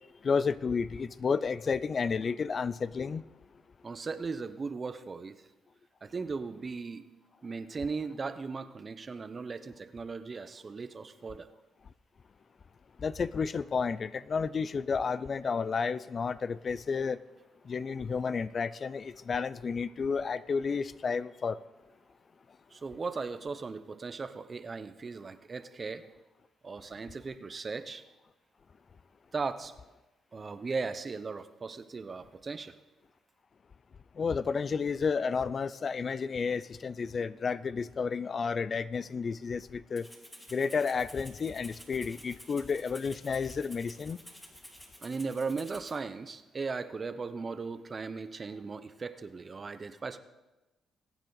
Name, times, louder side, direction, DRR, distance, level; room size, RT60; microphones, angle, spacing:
voice 1, 0.2-3.2 13.0-17.2 17.7-21.6 34.2-40.1 40.5-44.2, left 5 dB, 40° left, 17 dB, 0.4 m, -31 dB
voice 2, 3.8-5.4 6.0-7.0 7.4-11.5 22.7-26.0 26.6-28.0 29.3-29.7 30.3-32.7 45.0-50.2, right 4 dB, 35° right, 11 dB, 0.8 m, -37 dB
Rattle (instrument), 40.0-46.0, equal, 10° left, 2.8 m, -51 dB
22.0 x 9.1 x 4.0 m, 1.1 s
cardioid pair, 90°, 0 cm